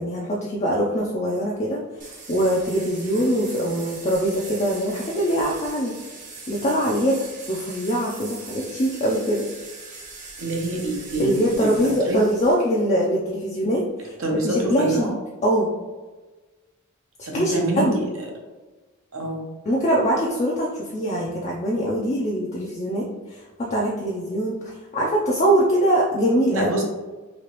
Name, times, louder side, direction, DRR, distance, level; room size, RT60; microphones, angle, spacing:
voice 1, 0.0-1.8 2.3-5.9 6.5-7.2 7.5-9.4 11.2-14.1 14.4-15.1 15.4-15.7 17.3-18.0 19.7-26.7, equal, 30° left, -3 dB, 0.4 m, -23 dB
sound 1, 2.0-12.5, right 3 dB, 40° right, 0.6 m, -40 dB
voice 2, 10.4-11.3 11.6-12.2 14.2-15.1 17.3-18.3 19.1-19.4 26.5-26.8, right 1 dB, 70° right, 0 dB, 0.8 m, -26 dB
3.1 x 2.8 x 2.9 m, 1.3 s
head